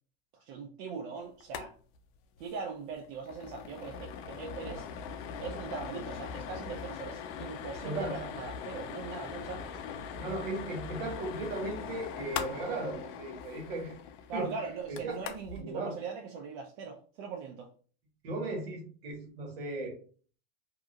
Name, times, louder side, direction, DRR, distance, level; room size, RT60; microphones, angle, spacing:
voice 1, 0.3-1.7 2.4-4.9 5.4-9.8 14.3-17.7, right 5 dB, 60° right, 2 dB, 0.6 m, -41 dB
sound 1, 1.4-1.7 1.9-2.0 2.4-2.6 2.9-15.6, left 7 dB, 50° left, 0.5 m, -41 dB
voice 2, 7.8-8.2 10.2-14.0 14.3-16.0 18.2-20.0, right 2 dB, 75° right, 1 dB, 1.3 m, -37 dB
2.8 x 2.4 x 2.5 m, 0.41 s
supercardioid pair, 115°, 29 cm